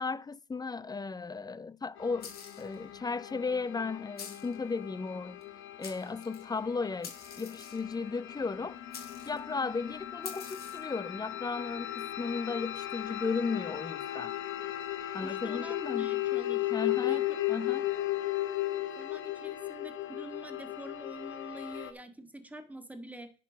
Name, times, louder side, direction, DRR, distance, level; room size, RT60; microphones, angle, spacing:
voice 1, 0.0-2.3 2.6-5.4 5.8-7.1 7.4-8.8 9.3-14.4 15.1-16.2 16.7-17.2 17.5-17.9, left 4 dB, 20° left, 0.5 m, -35 dB
sound 1, 2.0-21.9, left 14 dB, 80° left, 1.2 m, -36 dB
sound 2, 2.2-2.7 4.2-4.6 5.4-5.5 5.8-6.4 7.0-7.9 8.9-9.4 10.2-10.9, left 6 dB, 50° left, 2.6 m, -46 dB
voice 2, 15.2-17.4 17.9-18.4 18.7-23.3, right 1 dB, 5° right, 1.8 m, -46 dB
10.5 x 4.5 x 6.2 m
cardioid pair, 90°, 20 cm